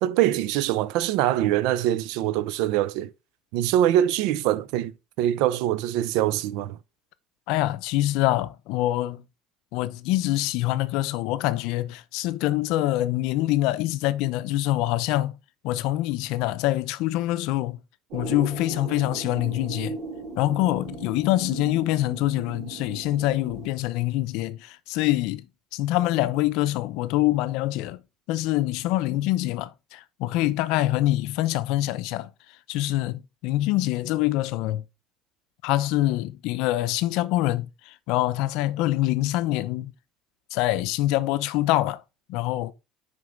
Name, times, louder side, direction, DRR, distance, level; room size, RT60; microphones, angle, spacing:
voice 1, 0.0-3.1 3.5-4.9 5.2-6.8, right 12 dB, 80° right, 0.5 m, -23 dB
voice 2, 7.5-9.2 9.7-15.4 15.6-17.8 18.1-20.0 20.4-25.4 25.7-28.0 28.3-32.3 32.7-34.8 35.6-39.9 40.5-42.0 42.3-42.7, left 16 dB, 75° left, 0.6 m, -25 dB
sound 1, 18.1-23.7, right 4 dB, 65° right, 2.4 m, -37 dB
6.4 x 5.3 x 3.7 m
cardioid pair, 130°, 0 cm